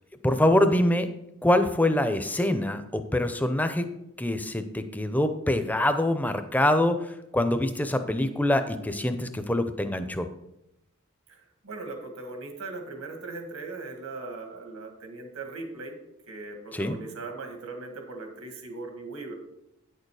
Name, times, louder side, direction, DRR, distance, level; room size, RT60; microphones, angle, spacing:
voice 1, 0.2-1.1 1.4-3.9 4.2-7.0 7.3-10.3 16.7-17.0, left 1 dB, 5° left, 9 dB, 0.5 m, -24 dB
voice 2, 11.3-16.0 16.3-19.3, right 3 dB, 80° right, 4 dB, 1.9 m, -39 dB
9.2 x 6.7 x 4.8 m, 0.87 s
head